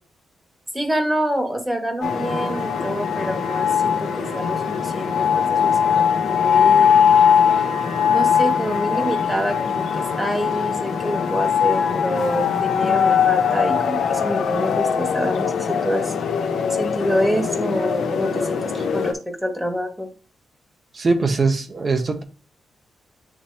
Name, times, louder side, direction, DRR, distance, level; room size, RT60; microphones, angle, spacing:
voice 1, 0.7-6.9 8.1-16.1 16.8-20.1, equal, 10° right, 4 dB, 2.1 m, -26 dB
sound 1, 2.0-19.1, left 7 dB, 80° left, 1.2 m, -21 dB
voice 2, 20.9-22.2, right 3 dB, 40° right, 6 dB, 1.4 m, -21 dB
9.7 x 3.4 x 2.9 m, 0.34 s
cardioid pair, 70°, 0 cm